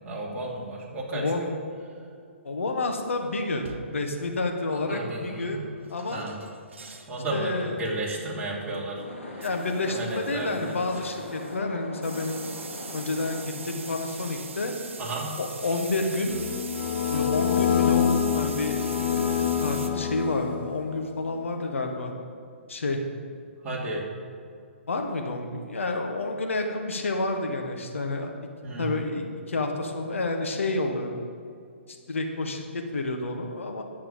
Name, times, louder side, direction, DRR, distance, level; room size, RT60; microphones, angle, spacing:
voice 1, 0.0-1.5 4.7-5.6 6.1-6.3 7.1-9.0 9.3-9.5 9.9-10.7 15.0-15.3 23.6-24.0 28.6-29.0, right 2 dB, 20° right, -5 dB, 2.8 m, -33 dB
voice 2, 1.1-1.5 2.4-5.6 5.9-6.2 7.3-8.0 9.4-12.4 12.9-14.8 15.4-16.4 17.1-22.1 22.7-23.0 24.9-28.3 28.8-31.2 32.1-33.8, left 2 dB, 70° left, 3 dB, 1.6 m, -29 dB
sound 1, 3.0-3.2 3.6-4.1 5.8-7.2 7.5-7.8 9.4-11.6 12.0-19.9, right 5 dB, 65° right, 1.2 m, -42 dB
sound 2, 8.8-15.4, left 1 dB, 90° left, 2.7 m, -41 dB
sound 3, 16.3-20.9, left 9 dB, 55° left, 1.3 m, -26 dB
11.0 x 7.5 x 7.4 m, 2.3 s
figure-of-eight pair, 130°, 7 cm